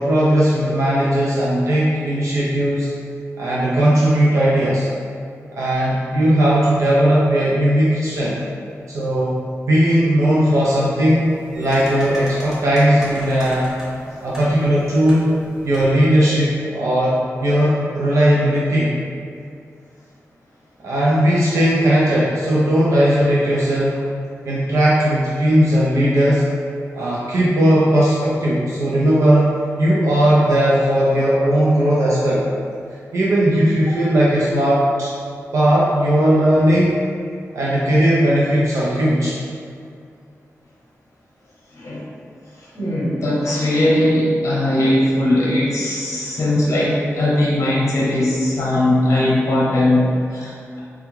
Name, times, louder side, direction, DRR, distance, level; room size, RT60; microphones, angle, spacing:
voice 1, 0.0-2.9 3.4-4.9 5.5-8.4 8.9-9.4 9.7-11.3 11.6-13.7 14.2-15.3 15.6-18.9 20.8-24.0 24.5-26.5 26.9-32.5 33.1-35.1 35.5-37.0 37.5-39.4, equal, 75° right, -7 dB, 0.5 m, -17 dB
sound 1, 11.1-16.1, equal, 10° right, 0.8 m, -37 dB
voice 2, 41.8-42.1 42.8-50.8, left 1 dB, 70° left, -6 dB, 0.7 m, -19 dB
3.4 x 2.3 x 3.0 m, 2.3 s
wide cardioid pair, 100°, 5 cm